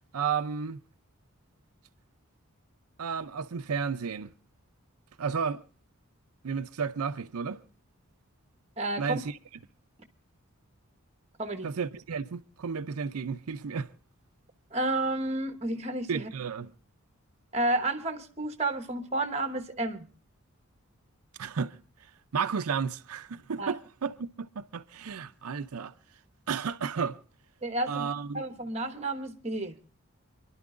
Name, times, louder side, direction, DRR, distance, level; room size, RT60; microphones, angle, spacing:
voice 1, 0.1-0.8 3.0-4.3 5.2-5.6 6.4-7.6 9.0-9.4 11.6-13.9 16.1-16.7 21.4-21.7 22.3-25.9 26.5-27.2 27.9-28.4, right 6 dB, 85° right, 0.5 m, -32 dB
voice 2, 8.8-9.2 11.4-11.7 14.7-16.3 17.5-20.1 23.6-23.7 27.6-28.1 28.3-29.8, right 2 dB, 30° right, 1.0 m, -31 dB
28.5 x 11.5 x 2.4 m
head